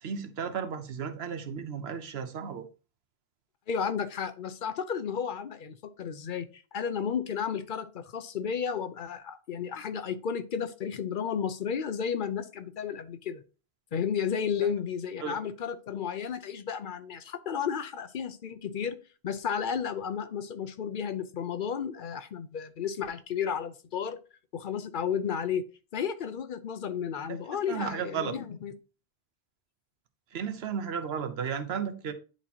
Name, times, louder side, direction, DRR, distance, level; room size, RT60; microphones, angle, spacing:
voice 1, 0.0-2.7 15.2-15.3 27.3-28.4 30.3-32.1, right 7 dB, 85° right, 1.0 m, -34 dB
voice 2, 3.7-13.4 13.9-19.0 19.2-24.2 24.5-25.6 25.9-28.7, left 7 dB, 60° left, 0.7 m, -33 dB
10.0 x 4.2 x 2.8 m
omnidirectional pair, 1.0 m